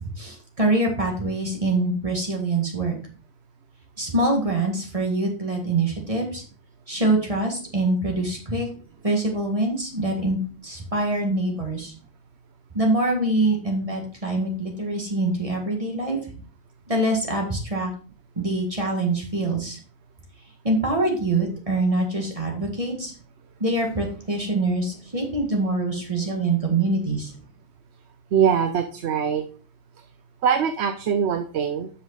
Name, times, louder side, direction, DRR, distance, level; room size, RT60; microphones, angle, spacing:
voice 1, 0.2-3.0 4.0-6.4 6.9-8.7 9.0-10.4 10.6-11.9 12.7-16.2 16.9-17.9 18.4-19.8 20.6-23.1 23.6-27.3, right 2 dB, 30° right, 1 dB, 1.9 m, -24 dB
voice 2, 28.3-29.4 30.4-31.9, right 7 dB, 80° right, 8 dB, 1.0 m, -22 dB
7.7 x 5.8 x 4.0 m, 0.40 s
omnidirectional pair, 1.1 m